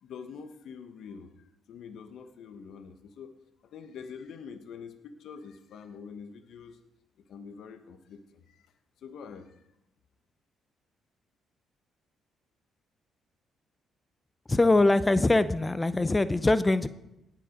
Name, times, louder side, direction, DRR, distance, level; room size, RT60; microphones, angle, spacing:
voice 1, 0.0-3.3 3.6-6.8 7.3-8.7 9.0-9.6, left 6 dB, 75° left, 8 dB, 1.0 m, -45 dB
voice 2, 14.5-16.9, left 2 dB, 20° left, 14 dB, 0.5 m, -23 dB
18.5 x 7.6 x 5.1 m, 0.90 s
cardioid pair, 90°, 0 cm